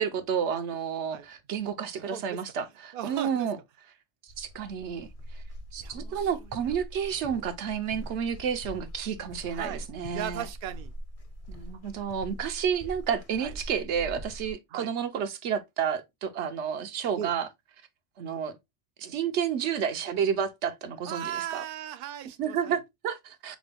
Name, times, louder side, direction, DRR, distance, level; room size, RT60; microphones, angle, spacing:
voice 1, 0.0-3.6 4.4-5.4 5.7-10.5 11.5-17.5 18.2-18.6 19.0-21.6 22.4-23.6, right 7 dB, 80° right, 1.0 m, -31 dB
voice 2, 2.0-2.4 2.9-3.5 5.8-6.8 9.5-10.9 13.4-13.5 14.7-14.9 17.2-17.3 21.0-22.8, right 11 dB, 60° right, 0.6 m, -38 dB
sound 1, 4.3-14.5, equal, 40° left, 0.6 m, -43 dB
5.0 x 2.2 x 3.3 m
omnidirectional pair, 1.2 m